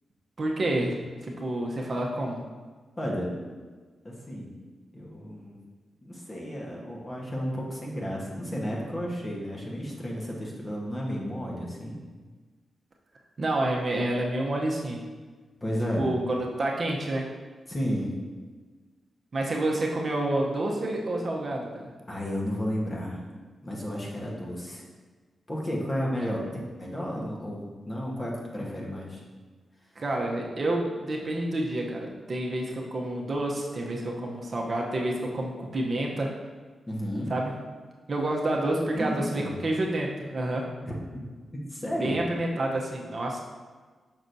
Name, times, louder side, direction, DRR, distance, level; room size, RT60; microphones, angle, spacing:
voice 1, 0.4-2.4 13.4-15.0 16.0-17.3 19.3-21.9 26.2-26.3 30.0-36.3 37.3-37.5 38.1-40.7 42.0-43.4, right 1 dB, 40° right, -1 dB, 0.8 m, -29 dB
voice 2, 3.0-3.4 4.0-4.6 4.9-5.6 6.0-12.0 15.6-16.1 17.7-18.2 22.1-23.2 23.6-24.8 25.5-26.4 26.7-29.2 36.9-37.3 38.9-39.5 41.5-42.2, equal, 25° left, -3 dB, 1.2 m, -32 dB
6.2 x 5.9 x 2.7 m, 1.4 s
wide cardioid pair, 115°, 0 cm